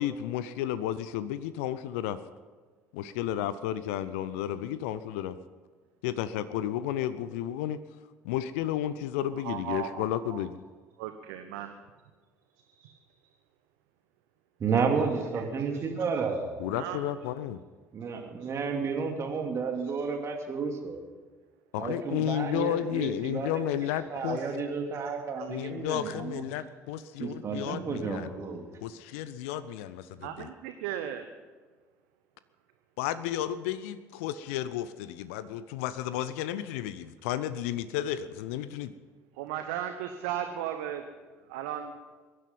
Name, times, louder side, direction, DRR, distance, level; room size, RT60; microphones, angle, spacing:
voice 1, 0.0-2.2 2.9-5.4 6.0-7.8 8.2-10.6 16.6-17.6 21.7-24.4 25.5-28.3 28.8-30.5 33.0-38.9, left 11 dB, 65° left, 14 dB, 0.6 m, -32 dB
voice 2, 9.4-10.4 11.0-11.7 16.7-17.0 18.4-18.5 23.9-24.0 24.3-24.6 25.4-25.5 30.2-31.3 39.3-41.0 41.5-41.9, right 10 dB, 65° right, 7 dB, 0.9 m, -36 dB
voice 3, 14.6-16.5 17.9-21.0 21.8-23.5 24.1-26.4 27.2-28.6, right 5 dB, 40° right, 3 dB, 2.7 m, -31 dB
21.5 x 11.0 x 5.4 m, 1.4 s
figure-of-eight pair, 55°, 8 cm